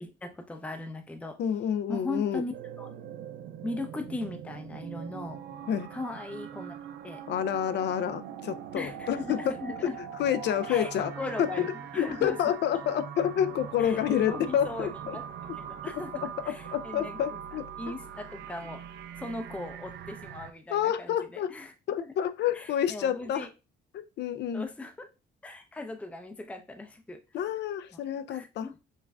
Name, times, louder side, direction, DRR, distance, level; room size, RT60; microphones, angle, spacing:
voice 1, 0.0-1.4 1.9-2.5 2.8-2.9 3.6-5.4 5.9-6.8 7.0-7.2 8.7-10.0 10.6-11.7 11.9-12.4 13.8-15.3 15.6-17.2 17.8-18.8 19.2-21.7 22.5-23.5 24.5-25.1 25.4-27.2 27.9-28.0 28.3-28.8, left 2 dB, 5° left, 0.5 m, -38 dB
voice 2, 1.4-2.4 5.7-5.9 7.3-9.4 9.8-9.9 10.2-11.1 11.4-15.2 16.2-17.6 20.7-21.5 21.9-23.5 23.9-24.7 27.3-28.7, left 9 dB, 65° left, 0.4 m, -29 dB
sound 1, 2.5-20.5, right 8 dB, 65° right, 0.4 m, -42 dB
5.4 x 2.5 x 2.3 m
cardioid pair, 110°, 19 cm